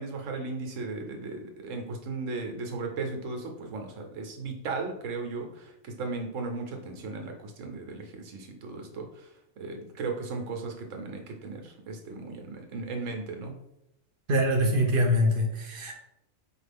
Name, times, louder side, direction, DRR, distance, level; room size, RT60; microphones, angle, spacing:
voice 1, 0.0-9.3 9.6-13.5, right 3 dB, 85° right, 3 dB, 1.1 m, -36 dB
voice 2, 14.3-15.9, equal, 55° right, 2 dB, 0.7 m, -24 dB
4.8 x 2.4 x 3.4 m, 0.81 s
omnidirectional pair, 1.3 m